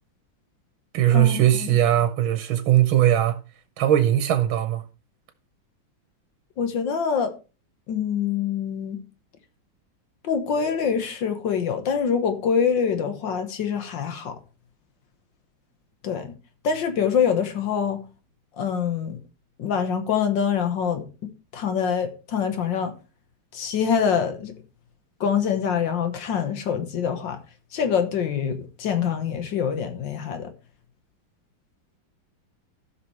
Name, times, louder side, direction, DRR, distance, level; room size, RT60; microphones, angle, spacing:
voice 1, 0.9-3.4 3.8-4.8, right 12 dB, 85° right, 1.7 m, -20 dB
voice 2, 6.6-7.3 7.9-9.0 10.2-14.4 16.0-16.3 16.6-18.0 18.6-19.2 19.6-21.1 21.5-22.9 23.5-24.5 25.2-27.4 27.7-30.5, left 7 dB, 70° left, 1.8 m, -25 dB
15.5 x 5.9 x 3.2 m
omnidirectional pair, 2.1 m